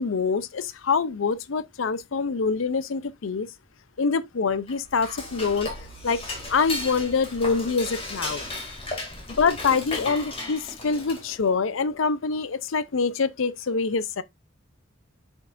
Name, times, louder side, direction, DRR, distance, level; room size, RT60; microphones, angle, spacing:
voice 1, 0.0-3.5 4.0-5.7 6.0-6.2 6.5-8.4 9.4-14.2, left 5 dB, 80° left, 0.6 m, -25 dB
Dishes pots and pans / Cutlery silverware, 4.6-11.5, left 2 dB, 30° left, 2.4 m, -35 dB
7.9 x 5.3 x 2.5 m
head